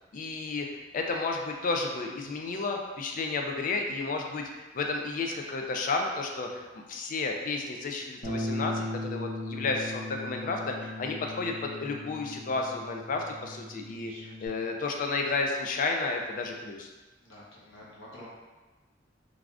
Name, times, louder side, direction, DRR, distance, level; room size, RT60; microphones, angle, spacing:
voice 1, 0.1-0.7 0.9-14.1 14.4-16.9, left 3 dB, 45° left, 2 dB, 0.3 m, -32 dB
Bass guitar, 8.2-14.5, left 1 dB, 60° left, 0.8 m, -38 dB
voice 2, 14.0-14.7 17.2-18.3, left 1 dB, 80° left, -7 dB, 0.9 m, -50 dB
3.3 x 2.4 x 2.4 m, 1.2 s
head